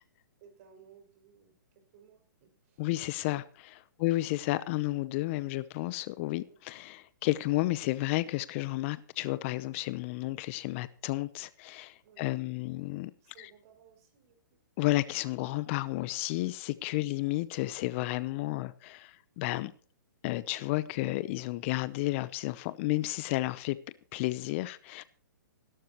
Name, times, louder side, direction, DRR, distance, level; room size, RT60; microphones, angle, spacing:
voice 1, 0.4-2.9 4.0-4.2 6.4-6.6 12.0-12.3 13.2-14.6 17.0-17.2, right 7 dB, 45° right, 6.2 m, -59 dB
voice 2, 2.8-13.1 13.4-13.5 14.8-19.7 20.2-23.8 24.1-25.0, left 19 dB, 35° left, 0.8 m, -32 dB
17.5 x 12.5 x 3.0 m
hypercardioid pair, 135°, 11 cm